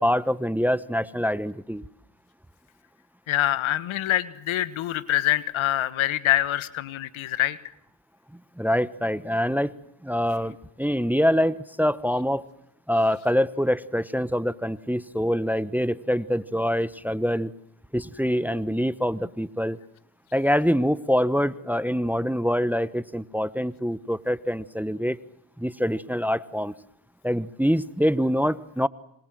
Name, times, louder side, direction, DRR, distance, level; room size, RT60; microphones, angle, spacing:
voice 1, 0.0-1.8 8.6-9.7 10.0-12.4 12.9-17.5 17.9-19.8 20.3-25.2 25.6-26.7 27.2-28.9, equal, 5° right, 18 dB, 1.1 m, -25 dB
voice 2, 3.3-7.6, left 14 dB, 75° left, 16 dB, 1.6 m, -25 dB
27.0 x 25.0 x 7.7 m, 0.75 s
supercardioid pair, 60°, 49 cm